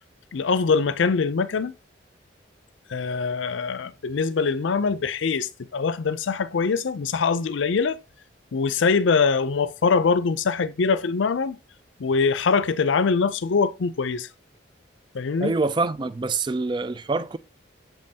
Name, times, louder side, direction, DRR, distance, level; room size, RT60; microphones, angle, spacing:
voice 1, 0.3-1.7 2.9-8.0 8.5-11.6 12.0-14.3 15.1-15.6, left 5 dB, 80° left, 0.5 m, -23 dB
voice 2, 15.4-17.4, right 3 dB, 25° right, 0.3 m, -25 dB
7.3 x 5.3 x 2.8 m
head